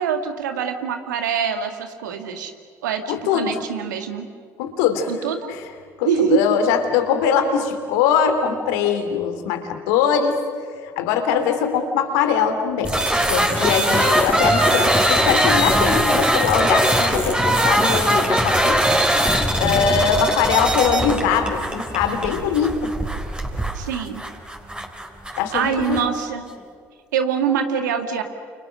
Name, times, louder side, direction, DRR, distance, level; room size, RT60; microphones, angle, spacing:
voice 1, 0.0-2.5 2.8-4.3 5.1-5.5 6.1-6.4 23.7-24.2 25.3-26.5 27.1-28.2, right 7 dB, 80° right, 6 dB, 2.1 m, -24 dB
voice 2, 3.1-3.6 4.6-5.1 5.5-5.7 6.0-10.4 10.8-12.9 13.3-18.8 19.6-22.9 25.4-26.1, left 7 dB, 75° left, 7 dB, 2.8 m, -22 dB
sound 1, 12.8-26.1, right 1 dB, 10° right, 4.2 m, -21 dB
sound 2, 13.5-20.4, left 2 dB, 15° left, 2.2 m, -26 dB
29.5 x 29.0 x 6.4 m, 2.2 s
hypercardioid pair, 55°, 10 cm